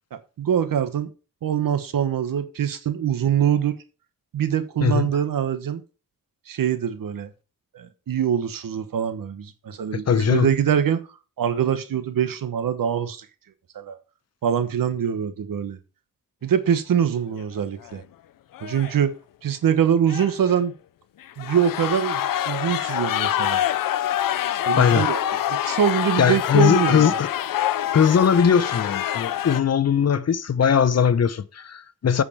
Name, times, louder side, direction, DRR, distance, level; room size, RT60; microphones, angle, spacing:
voice 1, 0.1-1.1 1.4-3.8 4.3-5.8 6.5-7.3 7.7-11.0 11.4-13.3 13.7-14.0 14.4-15.8 16.4-18.0 18.6-19.1 19.4-20.7 21.4-23.6 24.7-25.2 25.6-27.2, right 8 dB, 85° right, 1.2 m, -23 dB
voice 2, 9.9-10.5 24.8-25.0 26.2-27.3 27.9-32.2, left 7 dB, 50° left, 0.8 m, -20 dB
sound 1, 17.4-17.6 17.8-17.9 18.5-19.0 20.1-20.6 21.2-29.6, left 11 dB, 90° left, 0.6 m, -26 dB
8.7 x 5.0 x 6.6 m
cardioid pair, 70°, 33 cm